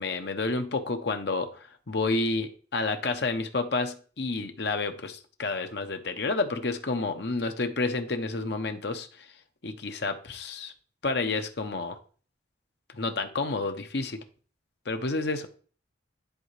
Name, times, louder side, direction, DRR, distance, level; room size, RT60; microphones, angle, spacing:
voice 1, 0.0-9.1 9.6-10.7 11.0-12.0 12.9-14.2 14.9-15.5, left 3 dB, 60° left, 6 dB, 0.8 m, -30 dB
10.5 x 4.1 x 3.3 m, 0.40 s
head